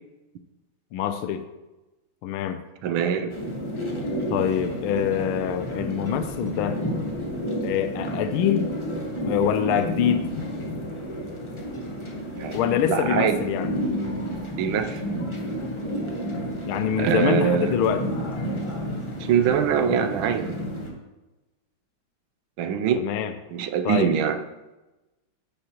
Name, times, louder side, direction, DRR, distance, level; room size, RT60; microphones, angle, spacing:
voice 1, 0.9-1.4 2.2-2.6 4.3-6.8 7.6-8.7 9.2-10.3 12.5-13.7 16.7-18.0 22.9-23.3 23.8-24.1, left 9 dB, 80° left, 9 dB, 1.4 m, -25 dB
voice 2, 2.8-3.3 12.4-12.5 12.9-13.4 14.6-15.0 17.0-17.8 19.2-20.5 22.6-23.0 23.5-24.4, right 8 dB, 75° right, 8 dB, 1.4 m, -23 dB
sound 1, 3.3-20.9, equal, 20° left, 0.9 m, -31 dB
9.9 x 9.5 x 3.0 m, 1.1 s
omnidirectional pair, 2.4 m